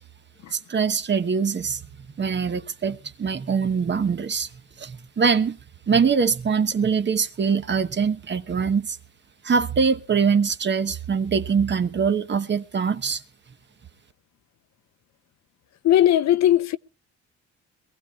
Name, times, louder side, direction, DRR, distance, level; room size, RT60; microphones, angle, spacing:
voice 1, 0.5-1.8 2.2-4.5 4.8-5.6 5.9-9.0 9.4-13.2, right 6 dB, 35° right, 1.1 m, -23 dB
voice 2, 15.8-16.8, left 12 dB, 60° left, 0.6 m, -18 dB
22.5 x 15.5 x 2.4 m
cardioid pair, 90°, 30 cm